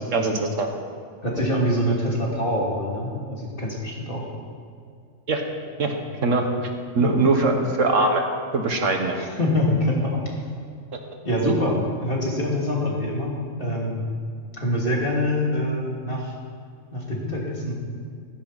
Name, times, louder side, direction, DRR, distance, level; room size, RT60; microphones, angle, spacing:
voice 1, 0.1-0.7 5.3-5.4 5.8-5.9 6.2-6.5 6.9-8.3 8.5-9.2 11.4-11.5, right 3 dB, 65° right, 3 dB, 1.7 m, -21 dB
voice 2, 1.2-4.3 7.0-7.1 9.2-10.2 11.2-14.0 14.5-16.3 16.9-17.7, left 1 dB, 40° left, -3 dB, 2.9 m, -25 dB
15.5 x 15.0 x 4.2 m, 2.2 s
omnidirectional pair, 1.4 m